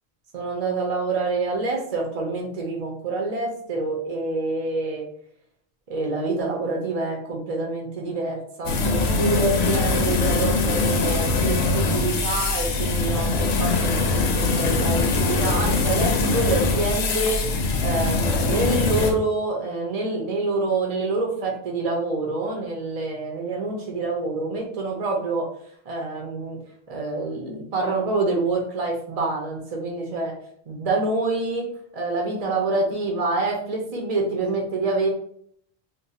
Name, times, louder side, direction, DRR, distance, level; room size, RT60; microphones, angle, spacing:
voice 1, 0.3-5.0 5.9-17.4 17.8-25.5 25.9-26.6 26.9-30.3 30.7-31.7 31.9-35.1, right 3 dB, 45° right, 0 dB, 0.6 m, -26 dB
sound 1, 8.7-19.1, left 3 dB, 75° left, 0.8 m, -22 dB
2.6 x 2.1 x 4.0 m, 0.65 s
omnidirectional pair, 1.1 m